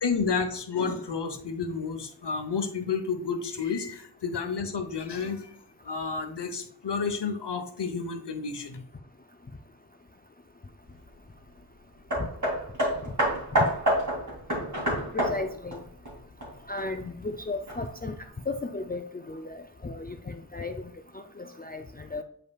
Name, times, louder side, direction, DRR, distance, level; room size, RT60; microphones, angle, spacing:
voice 1, 0.0-5.5 5.8-8.8, left 5 dB, 75° left, 7 dB, 1.0 m, -31 dB
Hammer, 12.1-16.8 17.7-17.8, equal, 45° right, 2.7 m, -28 dB
voice 2, 15.1-15.8 16.7-18.2 18.5-22.2, left 3 dB, 25° left, 6 dB, 0.4 m, -35 dB
7.9 x 5.4 x 2.4 m, 0.64 s
wide cardioid pair, 70°, 41 cm